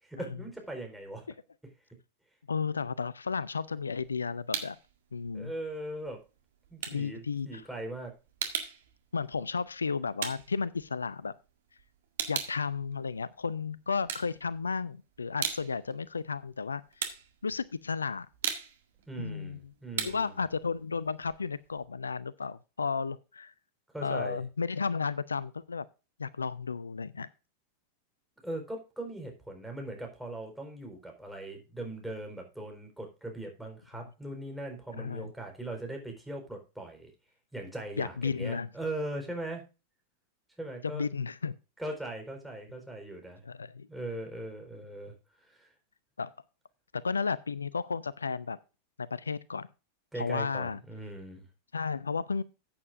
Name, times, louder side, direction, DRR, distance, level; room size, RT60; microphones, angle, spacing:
voice 1, 0.0-1.3 5.3-6.2 6.7-8.1 19.1-20.4 23.9-24.4 28.4-37.1 37.5-39.6 40.6-41.1 41.8-43.4 43.9-45.7 50.1-51.4, right 1 dB, ahead, 1 dB, 4.3 m, -40 dB
voice 2, 2.5-4.8 5.1-5.5 6.9-7.6 9.1-11.4 12.3-16.8 17.4-18.3 19.2-19.6 19.9-23.5 24.0-25.9 26.2-27.3 35.0-35.3 38.0-38.7 40.8-41.5 43.4-43.9 46.2-46.3 46.9-48.6 49.0-49.7 50.2-50.8 51.7-52.4, left 5 dB, 75° left, 21 dB, 0.4 m, -33 dB
sound 1, 3.6-4.9 5.2-11.5 11.8-13.5 13.9-14.8 15.1-21.8, right 8 dB, 60° right, 1.8 m, -38 dB
14.0 x 8.7 x 2.5 m, 0.30 s
figure-of-eight pair, 90°, 0 cm